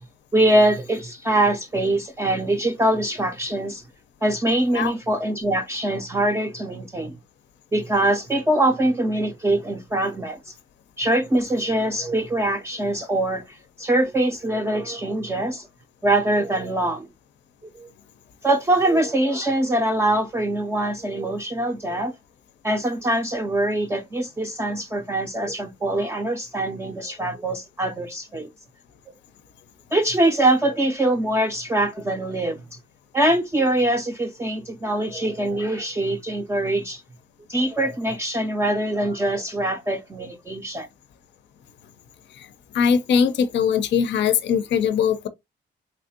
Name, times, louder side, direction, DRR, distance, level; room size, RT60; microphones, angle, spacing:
voice 1, 0.3-3.8 4.2-7.2 7.7-10.5 11.0-15.7 16.0-17.1 17.8-17.9 18.4-22.1 22.6-28.5 29.9-32.6 33.1-37.0 37.5-40.9, right 1 dB, 15° right, 0.4 m, -23 dB
voice 2, 42.7-45.3, left 7 dB, 70° left, 0.5 m, -21 dB
3.4 x 3.1 x 2.6 m
cardioid pair, 95°, 19 cm